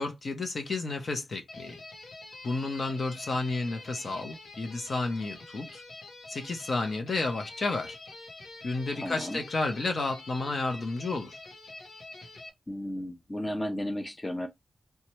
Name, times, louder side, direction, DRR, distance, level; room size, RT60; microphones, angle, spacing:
voice 1, 0.0-1.8 2.4-5.8 6.3-8.0 8.6-11.4, left 3 dB, 55° left, 0.7 m, -31 dB
sound 1, 1.5-12.5, left 2 dB, 90° left, 0.8 m, -46 dB
voice 2, 9.0-9.4 12.7-14.5, left 1 dB, 20° left, 0.5 m, -34 dB
2.8 x 2.2 x 3.0 m
wide cardioid pair, 115°, 0 cm